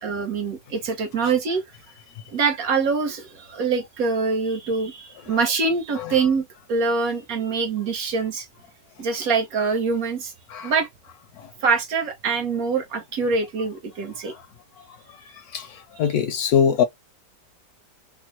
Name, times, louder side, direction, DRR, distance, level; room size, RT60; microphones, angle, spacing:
voice 1, 0.0-1.6 2.3-8.5 9.0-10.3 10.6-10.9 11.6-14.3 16.0-16.1, right 4 dB, 65° right, 1.1 m, -24 dB
voice 2, 16.0-16.8, left 8 dB, 70° left, 1.0 m, -20 dB
3.6 x 2.0 x 3.0 m
omnidirectional pair, 1.9 m